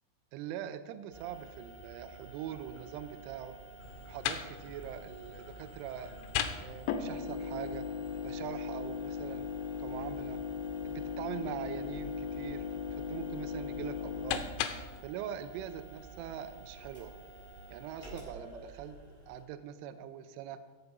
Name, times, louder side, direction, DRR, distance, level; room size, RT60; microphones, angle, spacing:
voice 1, 0.3-3.6 4.0-6.1 6.6-7.9 8.2-9.5 9.8-10.4 10.8-14.5 15.0-17.2 17.7-19.0 19.3-20.6, right 10 dB, 85° right, 10 dB, 3.1 m, -42 dB
sound 1, 1.1-19.4, right 3 dB, 5° left, 4.2 m, -51 dB
sound 2, 3.8-15.0, left 7 dB, 90° left, 3.2 m, -38 dB
16.0 x 7.0 x 5.4 m, 1.3 s
omnidirectional pair, 5.6 m